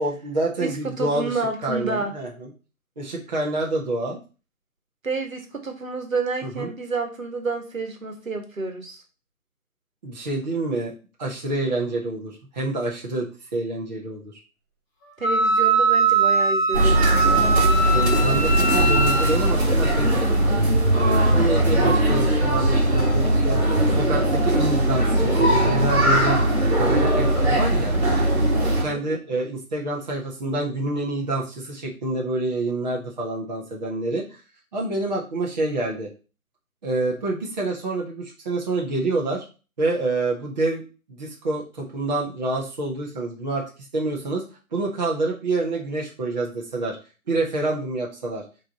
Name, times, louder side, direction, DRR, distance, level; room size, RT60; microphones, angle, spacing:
voice 1, 0.0-2.5 3.0-4.2 6.4-6.7 10.0-10.9 11.2-14.3 17.9-20.6 21.0-23.6 23.9-26.4 26.7-28.0 28.8-34.4 34.7-36.1 36.8-39.4 39.8-40.8 41.1-43.6 43.9-44.4 44.7-47.0 47.3-48.4, right 2 dB, 30° right, -2 dB, 1.4 m, -27 dB
voice 2, 0.6-2.1 5.0-9.0 15.2-17.3 28.6-29.0, right 3 dB, 65° right, 4 dB, 1.7 m, -29 dB
Wind instrument woodwind instrument, 15.2-19.5, right 4 dB, 10° left, 1.6 m, -21 dB
sound 1, 16.7-28.8, right 1 dB, 45° right, 2.1 m, -20 dB
7.5 x 3.3 x 4.2 m, 0.34 s
figure-of-eight pair, 150°, 43 cm